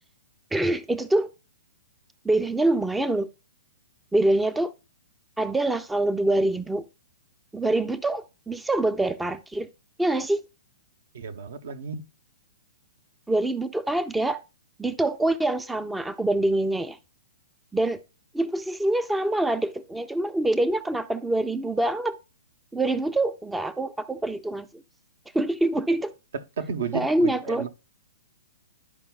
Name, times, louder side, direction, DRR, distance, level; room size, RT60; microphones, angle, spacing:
voice 1, 0.5-1.3 2.2-3.3 4.1-4.7 5.4-6.8 7.5-9.7 10.0-10.4 13.3-14.4 14.8-17.0 17.7-18.0 18.3-22.2 22.7-24.8 25.3-26.1 26.9-27.7, right 2 dB, 5° right, 0.4 m, -25 dB
voice 2, 11.1-12.0 26.6-27.7, right 6 dB, 65° right, 0.9 m, -32 dB
12.0 x 4.9 x 2.3 m
hypercardioid pair, 125°, 0 cm